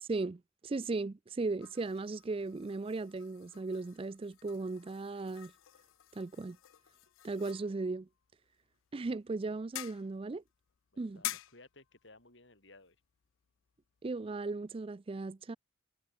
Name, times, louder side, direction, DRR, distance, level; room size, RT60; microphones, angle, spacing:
voice 1, 0.0-5.5 6.1-6.6 7.2-8.1 8.9-10.4 11.0-11.2 14.0-15.6, right 3 dB, 30° right, 0.4 m, -37 dB
sound 1, 1.6-14.7, left 15 dB, 90° left, 0.5 m, -49 dB
voice 2, 10.9-13.0, left 2 dB, 65° left, 6.5 m, -58 dB
head